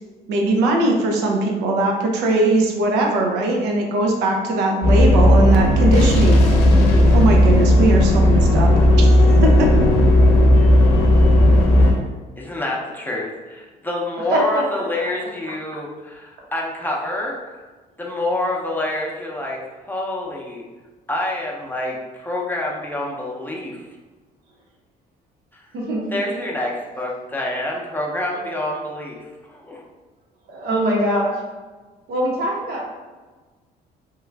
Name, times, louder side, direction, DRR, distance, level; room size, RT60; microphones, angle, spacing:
voice 1, 0.3-6.5 7.1-8.7 9.0-9.9, right 2 dB, 90° right, 1 dB, 0.5 m, -20 dB
sound 1, 4.8-11.9, left 1 dB, 80° left, 0.6 m, -14 dB
voice 2, 11.6-12.0 12.4-17.6 18.0-19.6 19.9-20.6 21.1-23.8 25.5-25.7 26.1-29.8, left 1 dB, 10° left, -2 dB, 0.6 m, -27 dB
voice 3, 14.3-14.6 25.7-26.2 30.5-31.4 32.1-32.9, right 1 dB, 65° right, -2 dB, 1.0 m, -22 dB
3.0 x 2.3 x 3.3 m, 1.3 s
cardioid pair, 110°, 17 cm